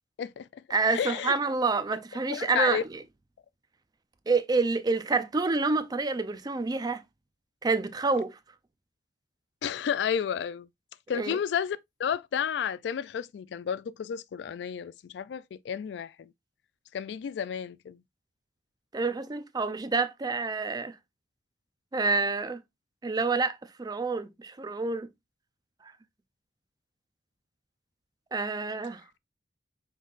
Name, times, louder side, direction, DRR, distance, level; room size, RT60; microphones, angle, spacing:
voice 1, 0.2-0.6 0.9-1.4 2.3-2.8 9.6-10.7 11.1-16.3 16.9-18.0, left 8 dB, 70° left, 0.3 m, -32 dB
voice 2, 0.7-3.0 4.3-7.0 7.6-8.4 11.1-11.4 18.9-20.9 21.9-22.6 23.0-25.1 28.3-29.0, right 3 dB, 20° right, 0.4 m, -28 dB
5.3 x 3.9 x 2.4 m
head